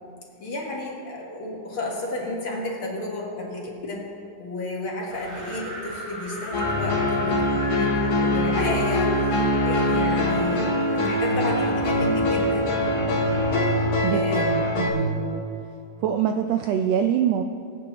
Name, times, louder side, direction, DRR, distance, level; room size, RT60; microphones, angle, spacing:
voice 1, 0.4-4.1 4.4-12.7 14.1-14.5, left 2 dB, 50° left, -2 dB, 2.1 m, -31 dB
Wind, 5.1-11.5, equal, 45° right, 3.0 m, -37 dB
sound 1, 6.5-14.9, left 1 dB, 65° left, 2.6 m, -23 dB
voice 2, 14.0-15.4 16.0-17.4, right 9 dB, 85° right, 6 dB, 1.5 m, -25 dB
22.5 x 8.7 x 2.9 m, 2.5 s
omnidirectional pair, 3.5 m